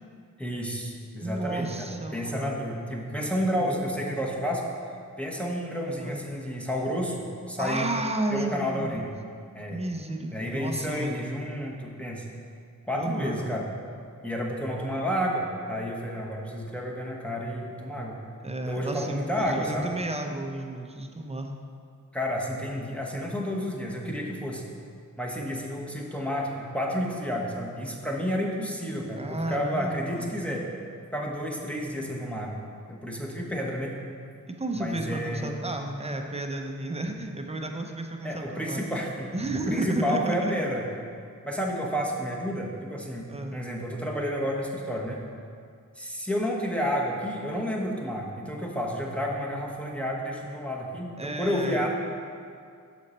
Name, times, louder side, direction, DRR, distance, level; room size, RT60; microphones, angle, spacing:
voice 1, 0.4-4.6 5.2-7.9 8.3-9.1 9.5-9.8 10.3-12.2 12.8-13.6 14.2-18.2 18.7-19.9 22.1-24.6 25.2-30.7 31.1-32.6 32.9-33.9 34.7-35.6 38.2-39.3 39.7-40.8 41.4-45.2 46.0-51.9, equal, 5° left, -2 dB, 1.0 m, -30 dB
voice 2, 1.2-2.6 5.9-6.2 7.6-9.2 9.7-11.2 12.9-13.6 18.4-21.5 29.2-30.3 34.5-38.8 39.3-40.5 43.3-43.6 51.2-51.9, right 2 dB, 20° right, 4 dB, 0.7 m, -32 dB
6.4 x 5.1 x 4.2 m, 2.3 s
cardioid pair, 40°, 35 cm